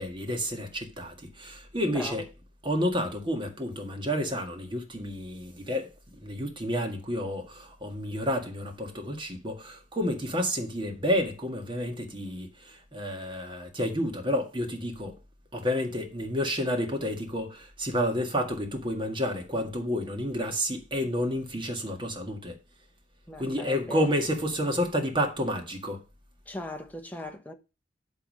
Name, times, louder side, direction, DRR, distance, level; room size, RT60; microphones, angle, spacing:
voice 1, 0.0-2.2 2.6-5.9 6.2-15.1 15.5-22.5 23.4-26.0, equal, 25° right, 1.8 m, -30 dB
voice 2, 1.9-2.2 23.3-24.1 26.5-27.5, left 1 dB, 10° left, 1.2 m, -38 dB
10.5 x 3.8 x 6.4 m
head